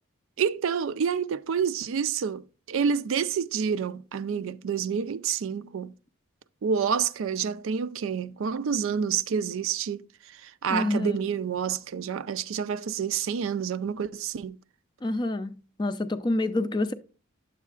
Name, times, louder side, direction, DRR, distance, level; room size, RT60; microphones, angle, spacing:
voice 1, 0.4-5.9 6.6-14.6, right 7 dB, 75° right, 0.4 m, -28 dB
voice 2, 10.7-11.2 15.0-16.9, left 2 dB, 20° left, 0.4 m, -27 dB
9.9 x 7.4 x 2.4 m
head